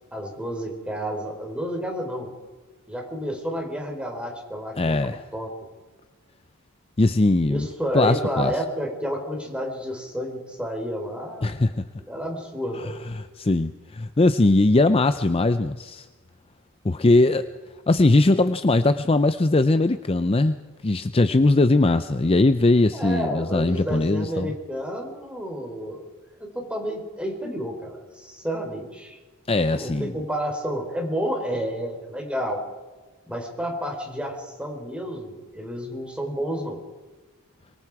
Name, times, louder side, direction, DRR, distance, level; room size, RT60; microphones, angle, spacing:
voice 1, 0.1-2.3 2.9-5.5 7.4-11.5 12.1-12.9 22.9-26.1 26.4-29.2 29.7-32.6 33.3-36.8, equal, 5° right, 2 dB, 4.2 m, -30 dB
voice 2, 4.8-5.2 7.0-7.7 7.9-8.5 11.4-11.9 13.1-16.1 16.8-17.5 17.9-20.6 20.8-24.5 29.5-30.1, left 2 dB, 25° left, 11 dB, 0.5 m, -20 dB
24.5 x 23.5 x 4.8 m, 1.3 s
head